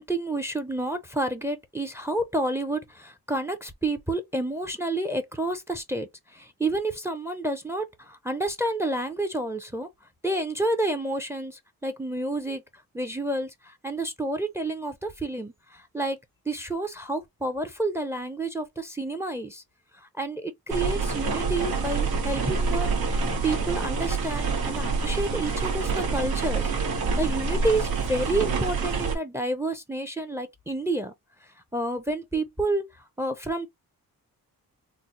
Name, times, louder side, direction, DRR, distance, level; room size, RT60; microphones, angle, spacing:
voice 1, 0.0-9.9 10.2-12.6 12.9-16.2 16.5-19.6 19.9-22.9 23.4-31.1 31.7-32.9 33.2-33.7, right 2 dB, 5° right, 0.5 m, -29 dB
sound 1, 20.7-29.2, right 4 dB, 85° right, 1.1 m, -27 dB
3.9 x 2.1 x 2.8 m
wide cardioid pair, 130°, 36 cm